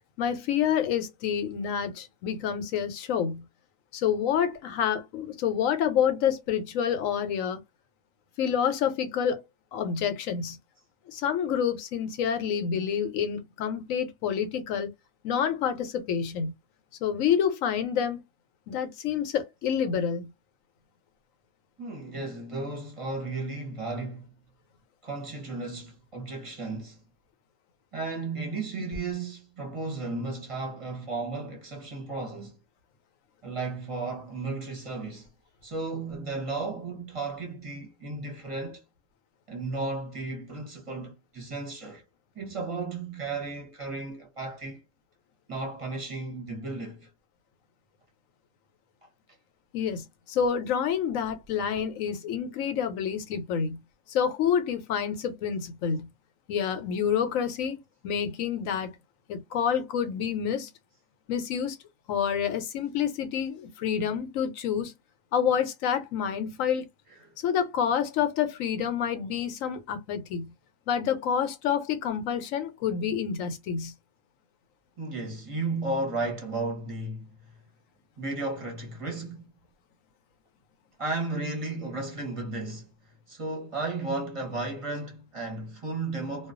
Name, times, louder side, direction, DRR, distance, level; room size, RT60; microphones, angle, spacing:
voice 1, 0.2-3.4 3.9-7.6 8.4-9.4 9.7-10.6 11.1-14.9 15.2-16.5 17.0-18.2 18.7-20.3 49.7-53.8 54.1-56.1 56.5-57.8 58.0-58.9 59.3-60.7 61.3-61.8 62.1-64.9 65.3-66.8 67.4-70.5 70.9-73.9, left 8 dB, 85° left, 1.0 m, -28 dB
voice 2, 21.8-24.3 25.0-27.0 27.9-32.6 33.4-35.3 35.6-38.8 39.5-42.0 42.3-44.8 45.5-47.1 67.1-67.3 75.0-77.5 78.2-79.5 81.0-82.9 83.3-86.5, right 3 dB, 30° right, 0.7 m, -34 dB
2.3 x 2.3 x 2.4 m
omnidirectional pair, 1.3 m